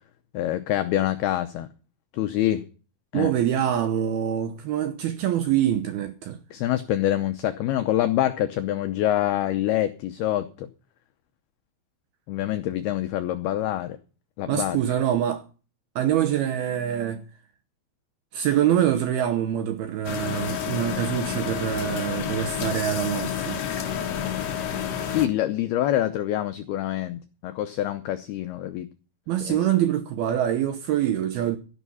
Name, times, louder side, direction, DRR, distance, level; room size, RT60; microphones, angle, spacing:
voice 1, 0.3-1.7 2.1-2.6 3.1-3.3 6.5-10.7 12.3-14.0 14.4-14.8 25.1-28.9 29.5-29.6, left 13 dB, 85° left, 2.2 m, -26 dB
voice 2, 3.1-6.4 14.5-15.4 16.0-17.2 18.3-23.6 29.3-31.6, right 11 dB, 75° right, 2.3 m, -25 dB
sound 1, 20.0-25.3, left 8 dB, 55° left, 2.8 m, -29 dB
13.0 x 11.0 x 5.6 m
omnidirectional pair, 5.6 m